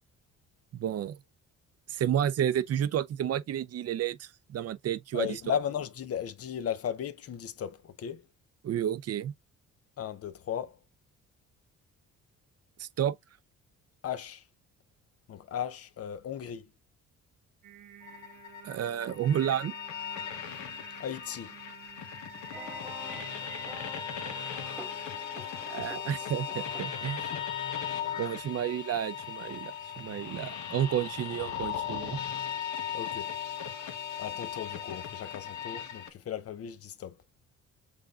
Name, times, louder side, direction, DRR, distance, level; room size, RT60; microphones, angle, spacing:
voice 1, 0.7-1.2 1.9-5.4 8.6-9.3 12.8-13.1 18.6-19.7 25.7-27.3 28.2-32.2, right 10 dB, 55° right, 0.6 m, -31 dB
voice 2, 5.1-8.2 10.0-10.8 14.0-14.4 15.3-16.7 21.0-21.5 27.2-27.5 32.9-33.3 34.2-37.1, left 9 dB, 50° left, 0.6 m, -36 dB
Singing, 17.6-25.2, right 10 dB, 90° right, 1.6 m, -51 dB
sound 1, 18.0-36.1, left 9 dB, 70° left, 1.1 m, -38 dB
sound 2, 22.5-27.6, right 2 dB, 10° right, 0.6 m, -47 dB
6.2 x 3.5 x 2.4 m
cardioid pair, 90°, 30 cm